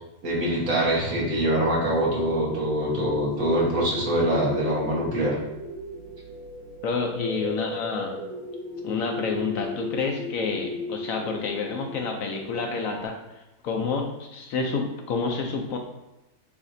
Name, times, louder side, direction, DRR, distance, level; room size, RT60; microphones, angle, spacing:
voice 1, 0.2-5.4, right 1 dB, 60° right, -5 dB, 1.6 m, -24 dB
sound 1, 2.0-13.1, left 2 dB, 80° right, 2.1 m, -36 dB
voice 2, 6.8-8.2 8.8-15.8, left 4 dB, 70° left, 3 dB, 0.9 m, -29 dB
7.0 x 2.6 x 2.6 m, 0.95 s
omnidirectional pair, 1.6 m